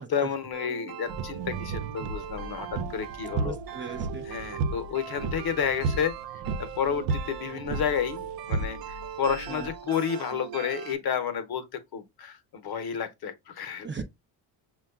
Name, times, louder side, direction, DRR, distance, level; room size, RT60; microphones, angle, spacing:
voice 1, 0.0-4.0 4.2-6.1 6.8-11.7 11.9-13.9, left 7 dB, 50° left, 0.9 m, -31 dB
sound 1, 0.5-10.9, right 9 dB, 50° right, 0.9 m, -40 dB
sound 2, 1.1-9.8, right 3 dB, 80° right, 0.5 m, -34 dB
voice 2, 3.4-4.2 9.5-9.7 13.8-14.0, right 4 dB, 25° right, 0.5 m, -37 dB
6.0 x 2.3 x 2.3 m
cardioid pair, 80°, 46 cm